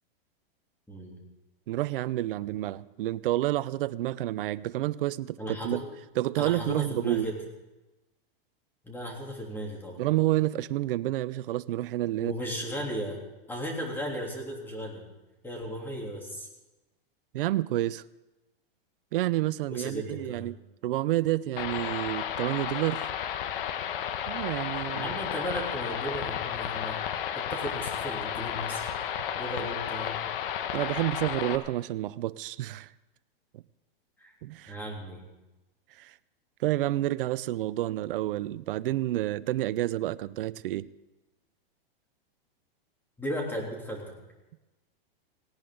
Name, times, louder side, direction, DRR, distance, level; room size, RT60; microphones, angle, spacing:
voice 1, 0.9-1.2 5.4-5.8 6.4-7.4 8.8-10.0 12.2-13.2 13.5-15.0 15.4-16.5 19.7-20.5 24.9-27.0 27.3-28.9 29.3-30.2 34.2-34.3 34.7-35.2 43.2-44.1, equal, 5° left, -1 dB, 3.3 m, -35 dB
voice 2, 1.7-5.8 6.2-7.3 10.0-12.4 17.3-18.0 19.1-20.5 20.8-23.1 24.3-25.1 30.7-32.9 33.5-33.6 34.4-34.8 36.0-36.1 36.6-40.9, right 15 dB, 65° right, 17 dB, 0.6 m, -29 dB
sound 1, 21.6-31.6, left 9 dB, 65° left, 1.3 m, -33 dB
18.0 x 17.0 x 3.9 m, 1.1 s
hypercardioid pair, 140°, 30 cm